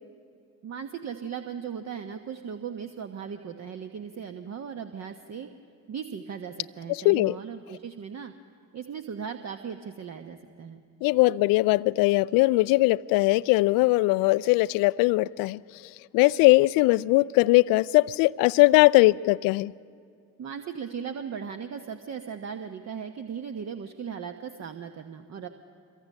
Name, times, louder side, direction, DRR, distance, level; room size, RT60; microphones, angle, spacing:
voice 1, 0.6-5.5 5.9-8.3 8.7-10.8 20.4-25.5, right 7 dB, 40° right, 1.1 m, -37 dB
voice 2, 6.9-7.4 11.0-15.6 16.1-19.7, left 20 dB, 55° left, 0.5 m, -20 dB
27.0 x 23.0 x 5.5 m
figure-of-eight pair, 50°, 41 cm